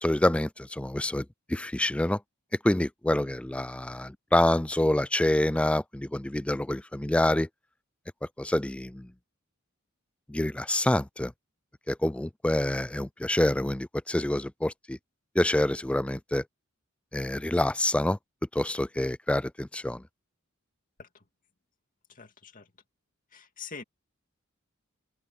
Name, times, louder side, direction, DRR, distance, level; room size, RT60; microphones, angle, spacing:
voice 1, 0.0-2.2 2.6-7.5 8.4-9.1 10.3-11.3 11.9-15.0 15.4-16.4 17.1-18.2 18.5-20.0, left 1 dB, 5° left, 0.3 m, -27 dB
voice 2, 22.1-22.7 23.3-23.8, left 5 dB, 40° left, 2.2 m, -44 dB
open air
head